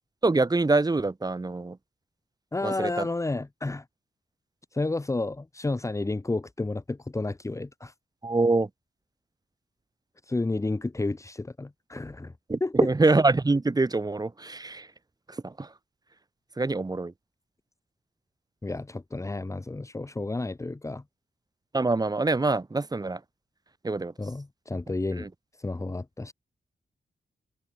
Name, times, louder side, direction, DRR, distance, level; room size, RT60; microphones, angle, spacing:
voice 1, 0.2-1.8 2.6-3.1 8.2-8.7 12.5-14.9 15.3-15.7 16.6-17.1 21.7-23.2 23.8-24.1 25.2-25.3, right 3 dB, 25° right, 5.6 m, -25 dB
voice 2, 2.5-3.8 4.7-7.9 10.3-12.3 12.6-12.7 18.6-21.0 24.2-25.3 25.6-26.3, left 2 dB, 20° left, 2.3 m, -31 dB
wide cardioid pair, 130°, 16 cm